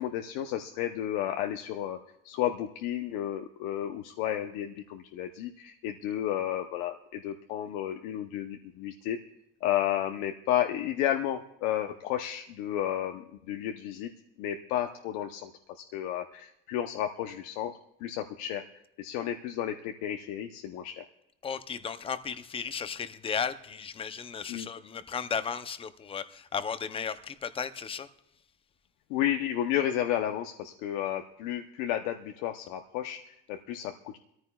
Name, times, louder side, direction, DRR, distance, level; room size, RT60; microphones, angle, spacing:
voice 1, 0.0-2.0 2.2-9.2 9.6-14.1 14.4-18.6 19.0-21.0 24.5-24.7 29.1-34.2, left 11 dB, 70° left, 5 dB, 0.8 m, -32 dB
voice 2, 21.4-28.1, left 6 dB, 20° left, 12 dB, 0.6 m, -35 dB
24.0 x 14.0 x 2.3 m, 0.79 s
cardioid pair, 145°, 29 cm